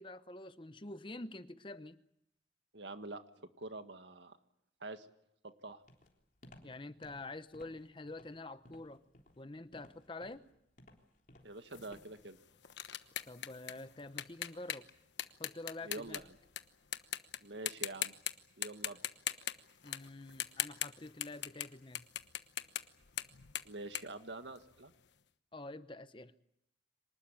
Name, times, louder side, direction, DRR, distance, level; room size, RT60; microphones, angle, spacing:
voice 1, 0.0-2.0 6.6-9.0 9.4-10.4 13.3-14.9 15.4-16.2 19.8-22.0 25.5-26.3, left 2 dB, 25° left, 0.9 m, -47 dB
voice 2, 2.7-4.4 4.8-5.1 5.4-5.8 11.4-12.4 15.8-16.3 17.4-18.1 18.6-19.0 23.6-24.9, right 2 dB, 75° right, 1.8 m, -46 dB
Walk footsteps, 5.9-12.3, left 1 dB, 45° left, 3.6 m, -59 dB
sound 1, 11.7-16.6 16.9-17.4 17.7-18.3 18.6-21.7 21.9-25.0, left 11 dB, 75° left, 1.2 m, -40 dB
25.0 x 19.5 x 8.8 m
head